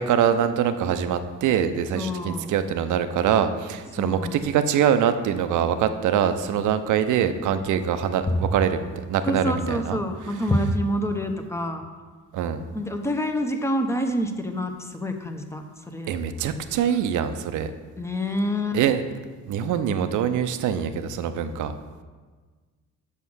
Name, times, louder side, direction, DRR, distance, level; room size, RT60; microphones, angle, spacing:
voice 1, 0.0-10.0 12.3-12.6 16.1-17.7 18.7-19.0 19.5-21.7, right 8 dB, 80° right, 10 dB, 0.6 m, -24 dB
voice 2, 1.9-2.5 4.0-4.4 8.3-8.5 9.2-11.8 12.7-16.1 18.0-18.8, equal, 10° left, 5 dB, 0.8 m, -27 dB
6.2 x 5.7 x 6.2 m, 1.4 s
cardioid pair, 90°, 30 cm